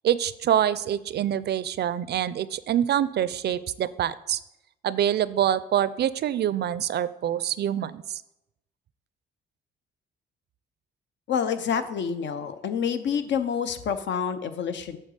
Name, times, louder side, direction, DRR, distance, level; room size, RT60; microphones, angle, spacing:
voice 1, 0.0-4.4 4.8-8.2, right 10 dB, 55° right, 17 dB, 0.5 m, -25 dB
voice 2, 11.3-15.0, left 7 dB, 65° left, 10 dB, 0.8 m, -28 dB
8.8 x 3.9 x 6.6 m, 0.89 s
cardioid pair, 90°, 20 cm